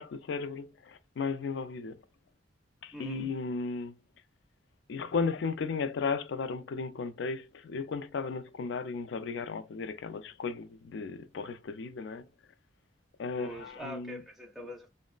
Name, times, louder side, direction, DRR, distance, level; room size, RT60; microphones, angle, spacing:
voice 1, 0.0-2.0 2.8-3.9 4.9-12.2 13.2-14.2, left 4 dB, 70° left, 0.4 m, -35 dB
voice 2, 2.9-3.3 13.3-14.9, equal, ahead, 0.4 m, -43 dB
2.9 x 2.0 x 2.3 m
head